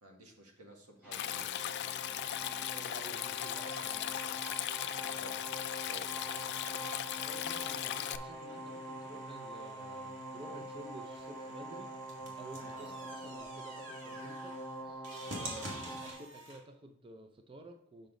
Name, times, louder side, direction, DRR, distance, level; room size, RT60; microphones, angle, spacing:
voice 1, 0.0-1.6 5.1-5.4 5.8-6.2 12.7-13.0, right 1 dB, 90° right, 1 dB, 1.8 m, -54 dB
sound 1, 1.0-16.1, right 1 dB, 5° right, 1.8 m, -45 dB
Stream, 1.1-8.2, left 11 dB, 50° left, 0.3 m, -38 dB
voice 2, 2.7-4.4 7.2-11.9 12.4-14.6 14.8-18.1, right 2 dB, 25° right, 5 dB, 0.5 m, -51 dB
sound 2, 7.1-16.6, right 1 dB, 55° right, 2.1 m, -49 dB
6.9 x 6.0 x 3.8 m, 0.71 s
head